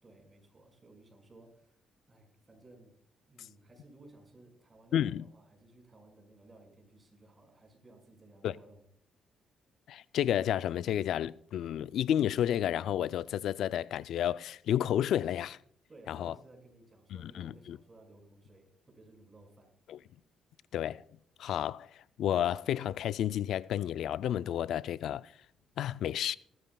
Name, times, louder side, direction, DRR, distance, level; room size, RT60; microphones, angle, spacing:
voice 1, 0.0-1.8 2.1-3.0 3.3-8.8 15.9-19.7, right 2 dB, 25° right, 5.3 m, -58 dB
voice 2, 4.9-5.2 8.4-8.5 9.9-15.6 16.1-16.3 17.2-17.8 19.9-20.0 20.7-21.0 21.4-25.3 25.8-26.4, left 10 dB, 75° left, 0.3 m, -31 dB
20.0 x 13.5 x 2.2 m
cardioid pair, 90°, 0 cm